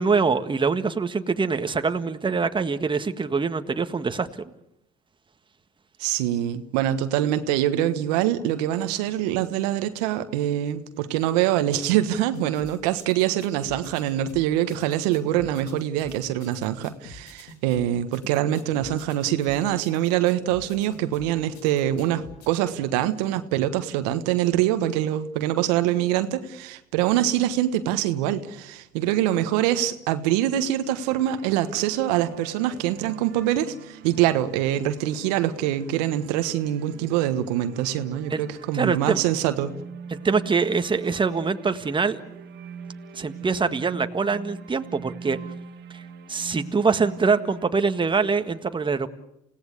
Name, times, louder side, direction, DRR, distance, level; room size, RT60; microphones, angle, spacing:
voice 1, 0.0-4.3 38.3-38.4 38.7-39.2 40.1-42.2 43.1-45.4 45.9-46.0 46.3-49.1, right 4 dB, 25° right, 9 dB, 1.7 m, -24 dB
voice 2, 6.0-39.7, right 12 dB, 80° right, 10 dB, 1.4 m, -24 dB
sound 1, 12.3-22.5, left 3 dB, 85° left, 3.7 m, -47 dB
sound 2, 30.9-47.7, right 6 dB, 60° right, 1.8 m, -42 dB
29.0 x 17.5 x 8.3 m, 0.84 s
hypercardioid pair, 70°, 20 cm